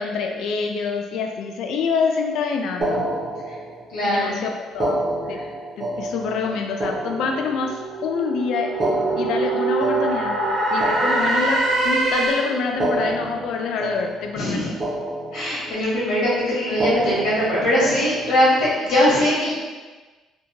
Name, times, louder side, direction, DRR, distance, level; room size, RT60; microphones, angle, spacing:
voice 1, 0.0-3.1 4.0-5.0 5.3-5.4 5.8-8.7 9.2-10.4 10.7-14.7, left 5 dB, 60° left, 2 dB, 0.3 m, -26 dB
sound 1, 2.8-4.0 4.7-8.0 8.7-12.0 12.7-14.5 14.8-15.9 16.7-18.5, right 1 dB, 20° right, 0.5 m, -28 dB
voice 2, 3.9-4.4 14.3-14.7 15.3-19.5, left 1 dB, 80° left, -7 dB, 0.8 m, -21 dB
sound 2, 6.5-12.7, right 2 dB, 75° right, 0.8 m, -24 dB
2.7 x 2.1 x 2.7 m, 1.3 s
cardioid pair, 180°, 0 cm